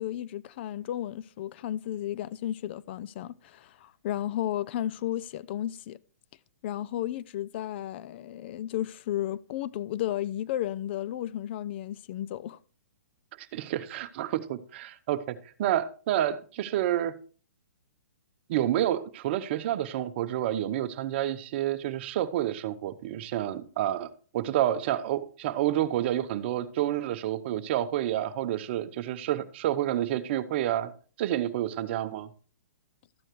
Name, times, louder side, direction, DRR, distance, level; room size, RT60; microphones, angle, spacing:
voice 1, 0.0-6.0 6.6-12.6, left 12 dB, 40° left, 0.3 m, -33 dB
voice 2, 13.4-17.1 18.5-30.9 31.2-32.3, right 12 dB, 45° right, 0.8 m, -29 dB
13.0 x 8.9 x 3.1 m
hypercardioid pair, 145°, 9 cm